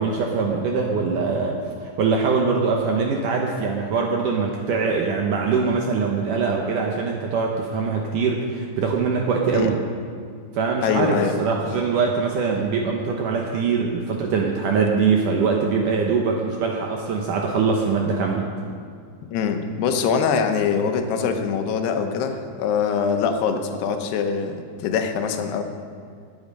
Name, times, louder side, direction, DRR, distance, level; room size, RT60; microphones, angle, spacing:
voice 1, 0.0-9.8 10.5-18.4, right 5 dB, 70° right, 1 dB, 2.0 m, -23 dB
voice 2, 10.8-11.3 19.3-25.6, left 6 dB, 80° left, 6 dB, 3.0 m, -23 dB
20.0 x 8.7 x 5.4 m, 2.2 s
omnidirectional pair, 4.7 m